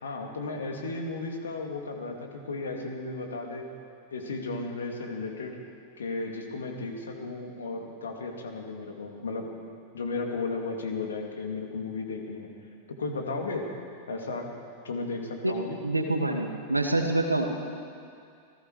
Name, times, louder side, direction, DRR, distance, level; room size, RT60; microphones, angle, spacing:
voice 1, 0.0-3.7 4.1-5.6 6.0-9.5 9.9-12.5 12.9-13.7 14.1-14.5 14.8-15.8, left 3 dB, 70° left, 2 dB, 3.0 m, -34 dB
voice 2, 15.8-17.4, right 2 dB, 85° right, 3 dB, 2.3 m, -26 dB
28.0 x 19.0 x 5.1 m, 2.3 s
figure-of-eight pair, 90°, 0 cm